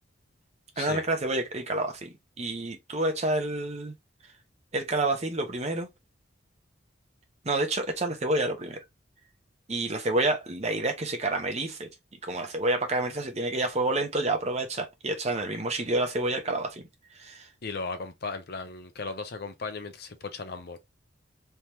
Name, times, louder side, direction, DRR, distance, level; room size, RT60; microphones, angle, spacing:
voice 1, 0.8-3.9 4.7-5.9 7.4-8.8 9.7-11.9 12.2-16.8 17.2-17.4, right 2 dB, 35° right, 0.8 m, -28 dB
voice 2, 17.6-20.8, left 4 dB, 50° left, 0.6 m, -36 dB
3.4 x 2.9 x 2.9 m
head